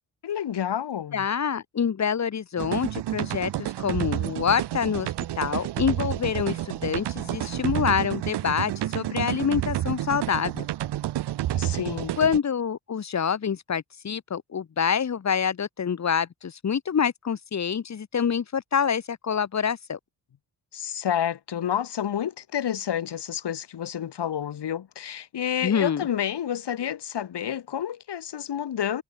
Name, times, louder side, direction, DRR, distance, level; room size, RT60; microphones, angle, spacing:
voice 1, 0.2-1.3 11.5-12.2 20.7-29.0, left 9 dB, 85° left, 2.1 m, -29 dB
voice 2, 1.1-10.7 12.2-20.0 25.6-26.0, left 7 dB, 45° left, 1.2 m, -26 dB
sound 1, 2.6-12.4, right 13 dB, 90° right, 0.6 m, -30 dB
wide cardioid pair, 155°, 40 cm